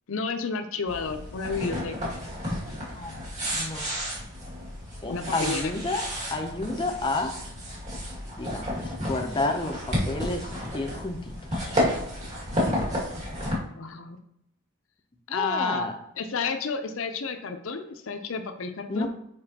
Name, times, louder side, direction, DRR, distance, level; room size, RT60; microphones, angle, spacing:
voice 1, 0.1-2.2 5.1-5.7 13.8-14.2 15.3-15.9 16.2-19.1, left 4 dB, 65° left, 7 dB, 0.6 m, -31 dB
sound 1, 0.9-13.6, equal, 30° right, 1.9 m, -31 dB
voice 2, 3.5-3.9 5.0-6.0 6.3-7.3 8.4-11.8 15.3-16.0 18.9-19.1, left 2 dB, 20° left, 3 dB, 0.5 m, -30 dB
6.9 x 4.8 x 2.8 m, 0.78 s
head